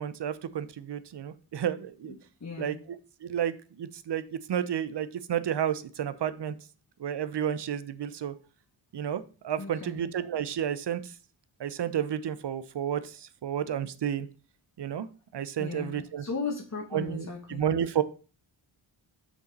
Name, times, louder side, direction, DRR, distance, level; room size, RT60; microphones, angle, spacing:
voice 1, 0.0-2.1 2.6-6.6 7.0-8.3 8.9-11.1 11.6-14.3 14.8-15.1 15.3-16.2 16.9-18.0, right 9 dB, 55° right, 14 dB, 0.8 m, -31 dB
voice 2, 2.1-2.8 9.6-10.0 15.6-17.6, left 4 dB, 35° left, 0 dB, 1.3 m, -37 dB
6.3 x 5.4 x 4.0 m, 0.37 s
supercardioid pair, 40°, 49 cm